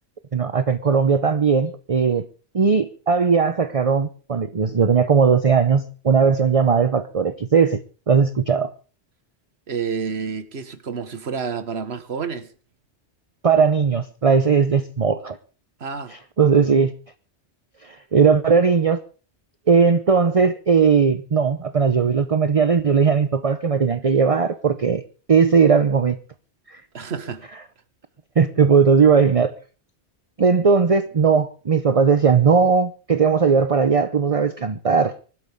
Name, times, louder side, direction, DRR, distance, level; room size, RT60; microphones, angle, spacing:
voice 1, 0.3-2.3 2.5-8.7 13.4-15.4 16.1-16.9 17.8-19.0 19.7-25.0 25.3-26.2 26.7-26.8 28.4-29.5 30.4-35.1, right 5 dB, 35° right, 0.7 m, -18 dB
voice 2, 9.7-12.5 15.8-16.1 26.9-27.4, right 6 dB, 65° right, 1.6 m, -29 dB
24.5 x 12.5 x 3.6 m
omnidirectional pair, 1.2 m